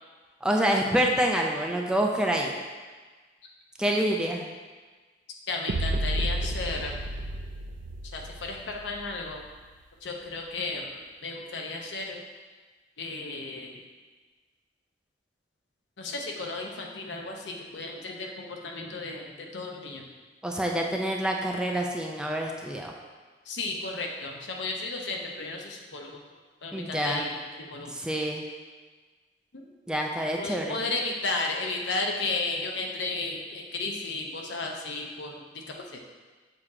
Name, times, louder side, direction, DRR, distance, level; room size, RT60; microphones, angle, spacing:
voice 1, 0.4-2.5 3.8-4.5 20.4-22.9 26.7-27.2 27.9-28.4 29.9-30.8, right 1 dB, 5° right, 0 dB, 0.4 m, -27 dB
voice 2, 5.5-7.0 8.1-9.4 10.0-12.2 13.0-13.8 16.0-20.0 23.5-26.2 26.6-27.9 29.5-29.7 30.4-35.6 35.9-36.0, left 3 dB, 70° left, 1 dB, 0.8 m, -34 dB
sound 1, 5.7-9.7, right 1 dB, 80° right, 0.4 m, -32 dB
6.9 x 2.9 x 4.8 m, 1.4 s
head